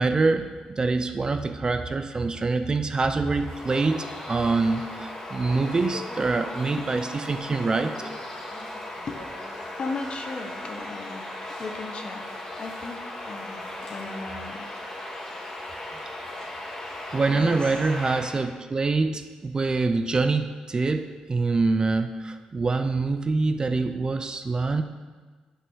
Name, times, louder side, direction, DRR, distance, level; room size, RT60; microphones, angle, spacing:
voice 1, 0.0-7.9 17.1-24.8, right 3 dB, 30° right, 8 dB, 0.5 m, -25 dB
Bird vocalization bird call bird song, 3.2-18.5, left 1 dB, 25° left, 2.1 m, -37 dB
voice 2, 9.8-13.0 13.2-14.7 17.3-17.7, left 3 dB, 45° left, 5 dB, 1.0 m, -36 dB
6.0 x 5.5 x 6.2 m, 1.4 s
cardioid pair, 75°, 2 cm